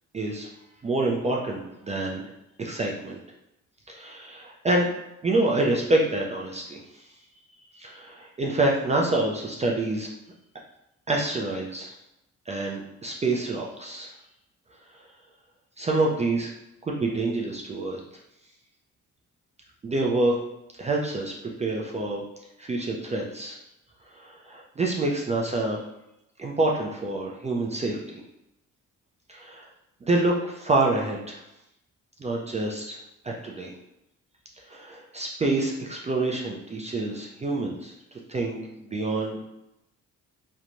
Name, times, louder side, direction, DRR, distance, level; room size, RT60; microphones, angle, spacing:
voice 1, 0.1-0.5 0.8-2.2 2.6-3.2 3.9-4.9 5.2-7.0 7.7-10.1 11.1-11.9 12.5-14.1 14.9-15.0 15.8-16.5 16.9-18.0 19.8-20.4 20.8-21.3 21.6-22.2 22.6-23.6 24.1-25.8 26.4-28.2 29.3-29.7 30.0-31.4 32.2-33.0 33.2-33.7 34.7-37.9 38.3-39.4, right 2 dB, 25° right, -1 dB, 0.4 m, -27 dB
2.9 x 2.1 x 2.5 m, 0.87 s
cardioid pair, 90°, 30 cm